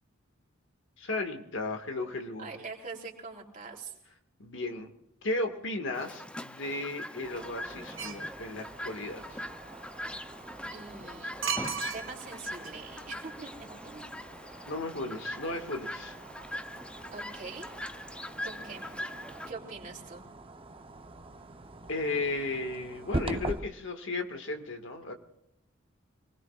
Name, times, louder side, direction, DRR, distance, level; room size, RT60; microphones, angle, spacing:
voice 1, 1.0-2.5 4.4-4.9 5.2-9.5 14.7-16.1 21.9-25.1, left 2 dB, 70° left, 5 dB, 1.9 m, -35 dB
voice 2, 2.4-4.0 10.7-14.3 17.1-17.8 18.4-18.9 19.5-20.2, right 4 dB, 40° right, -1 dB, 3.3 m, -44 dB
Chirp tweet, 5.9-19.5, left 1 dB, 5° left, 0.6 m, -42 dB
sound 1, 7.2-23.6, right 2 dB, 25° right, 0.9 m, -43 dB
sound 2, 8.0-8.3 11.4-12.4 12.6-12.7, right 6 dB, 75° right, 1.4 m, -33 dB
27.0 x 20.0 x 2.5 m, 0.82 s
head